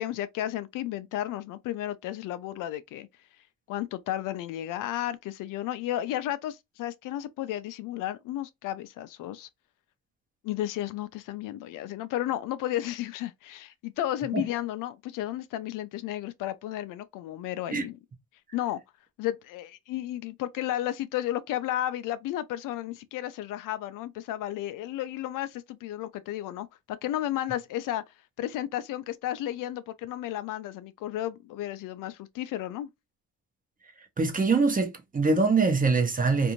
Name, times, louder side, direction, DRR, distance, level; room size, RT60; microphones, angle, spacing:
voice 1, 0.0-3.1 3.7-9.5 10.4-18.0 18.5-18.8 19.2-28.0 28.4-32.9, left 13 dB, 75° left, 0.5 m, -33 dB
voice 2, 34.2-36.5, right 4 dB, 25° right, 0.9 m, -24 dB
2.6 x 2.5 x 2.9 m
cardioid pair, 90°, 33 cm